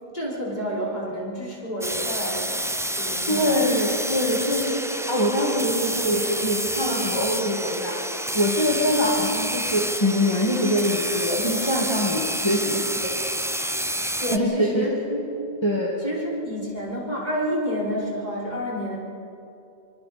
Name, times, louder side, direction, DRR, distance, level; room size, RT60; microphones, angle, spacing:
voice 1, 0.1-2.6 2.9-3.6 14.2-15.4 16.0-19.0, equal, 45° left, -7 dB, 5.5 m, -29 dB
sound 1, 1.8-14.4, right 1 dB, 5° right, 0.4 m, -28 dB
voice 2, 3.3-8.0 8.3-13.1 14.3-14.9 15.6-15.9, equal, 25° left, -5 dB, 2.4 m, -24 dB
27.0 x 24.5 x 4.4 m, 2.7 s
omnidirectional pair, 1.1 m